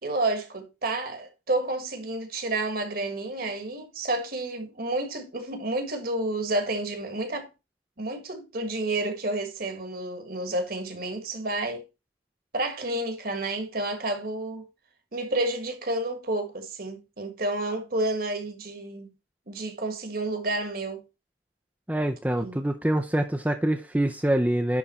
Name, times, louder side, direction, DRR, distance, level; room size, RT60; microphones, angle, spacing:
voice 1, 0.0-7.5 8.0-11.8 12.5-14.7 15.1-19.1 19.5-21.0 22.4-22.6, right 2 dB, 50° right, 1.5 m, -30 dB
voice 2, 21.9-24.8, right 1 dB, 10° right, 0.5 m, -25 dB
11.0 x 3.6 x 4.2 m
head